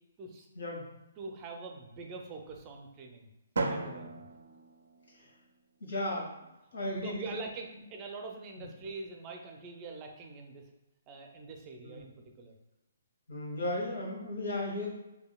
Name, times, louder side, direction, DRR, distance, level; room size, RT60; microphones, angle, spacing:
voice 1, 1.2-3.3 3.7-4.3 6.8-10.6 11.1-12.1 12.4-12.5, right 4 dB, 25° right, 2 dB, 0.4 m, -44 dB
Drum, 3.6-5.5, right 3 dB, 85° right, 0.4 m, -36 dB
voice 2, 5.8-6.3 6.7-7.2 8.6-8.7 11.8-12.0 13.3-14.9, left 1 dB, 85° left, -3 dB, 1.5 m, -35 dB
4.7 x 2.7 x 2.3 m, 0.94 s
hypercardioid pair, 155°, 0 cm